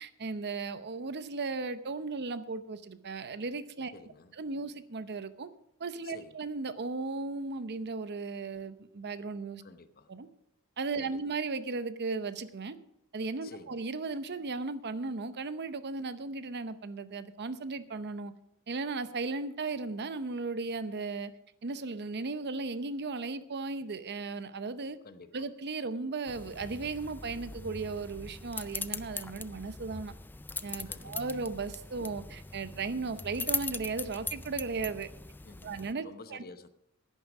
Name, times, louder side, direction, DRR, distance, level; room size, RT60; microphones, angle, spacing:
voice 1, 0.0-3.9 4.4-5.5 5.8-9.6 10.1-10.3 10.8-12.8 13.1-18.3 18.7-21.3 21.6-25.0 25.3-30.1 30.6-35.1 35.6-36.4, right 3 dB, 50° right, 0.7 m, -36 dB
voice 2, 3.9-4.3 6.0-6.3 9.6-10.1 11.0-11.2 13.4-13.8 25.0-25.5 30.9-31.3 35.4-36.7, left 3 dB, 45° left, 0.8 m, -51 dB
sound 1, 26.3-35.9, left 4 dB, 10° left, 0.3 m, -40 dB
11.0 x 9.5 x 6.1 m
head